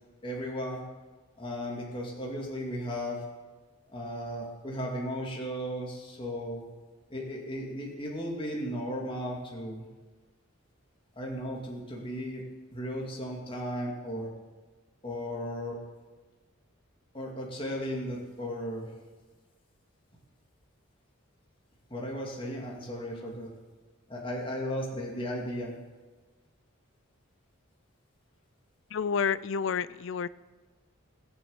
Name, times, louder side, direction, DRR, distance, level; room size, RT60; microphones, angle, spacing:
voice 1, 0.2-0.8 1.4-3.2 3.9-6.6 7.1-9.8 11.2-12.4 12.7-14.3 15.0-15.8 17.1-18.9 21.9-23.5 24.1-25.7, equal, 25° left, -2 dB, 2.4 m, -35 dB
voice 2, 28.9-30.3, left 6 dB, 65° left, 18 dB, 0.4 m, -29 dB
16.5 x 7.2 x 8.0 m, 1.3 s
head